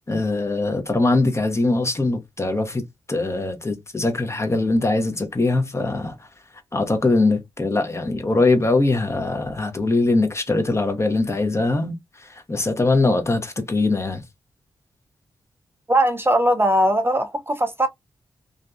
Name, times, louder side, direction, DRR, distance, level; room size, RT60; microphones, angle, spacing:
voice 1, 0.1-6.1 6.7-14.2, left 2 dB, 30° left, 0.8 m, -22 dB
voice 2, 15.9-17.9, right 1 dB, 25° right, 0.6 m, -19 dB
2.5 x 2.2 x 2.4 m
cardioid pair, 45°, 9 cm